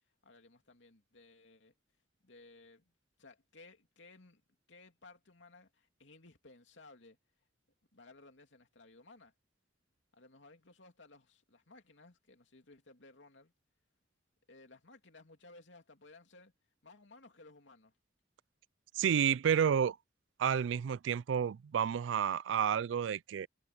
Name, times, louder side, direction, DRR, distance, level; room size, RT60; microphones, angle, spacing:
voice 1, 0.2-1.7 2.2-2.9 3.2-4.4 4.7-7.2 7.9-9.3 10.1-13.5 14.5-16.5 16.8-17.9, left 3 dB, 75° left, 2.7 m, -58 dB
voice 2, 18.9-20.0 20.4-23.5, right 8 dB, 80° right, 0.3 m, -30 dB
head